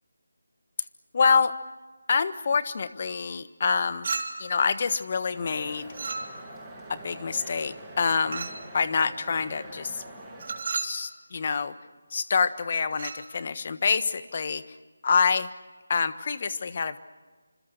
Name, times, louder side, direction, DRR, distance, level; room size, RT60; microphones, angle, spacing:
voice 1, 1.1-1.5 2.1-4.1 4.4-5.9 6.9-10.0 10.7-11.7 12.1-14.6 15.0-15.5 15.9-17.0, left 5 dB, 40° left, 13 dB, 1.4 m, -26 dB
Chink clink, 4.0-4.6 5.9-6.6 8.3-8.7 10.4-11.0 12.9-13.3, right 4 dB, 45° right, 3.2 m, -33 dB
sound 1, 5.3-10.6, right 1 dB, 10° right, 6.5 m, -44 dB
27.5 x 26.0 x 6.7 m, 1.3 s
figure-of-eight pair, 160°, 0 cm